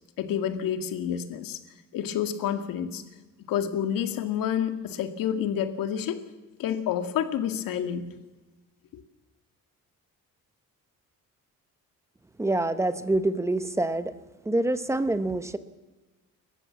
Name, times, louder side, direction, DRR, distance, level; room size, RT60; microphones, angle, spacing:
voice 1, 0.2-1.6 1.9-3.0 3.5-6.2 6.6-8.1 8.9-9.0, left 9 dB, 85° left, 8 dB, 2.1 m, -29 dB
voice 2, 12.4-14.1 14.4-15.6, right 2 dB, 10° right, 12 dB, 0.9 m, -26 dB
29.5 x 15.0 x 7.4 m, 1.2 s
cardioid pair, 170°, 33 cm